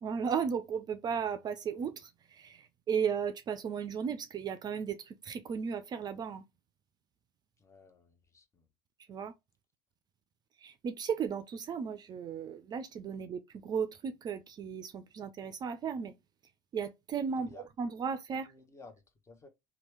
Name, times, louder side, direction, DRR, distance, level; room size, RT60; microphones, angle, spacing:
voice 1, 0.0-6.4 9.1-9.3 10.6-16.1 16.7-18.5, right 6 dB, 35° right, 0.4 m, -35 dB
voice 2, 7.6-8.7 17.4-17.6 18.5-19.5, left 2 dB, 25° left, 0.9 m, -55 dB
2.9 x 2.3 x 3.2 m
hypercardioid pair, 70°, 12 cm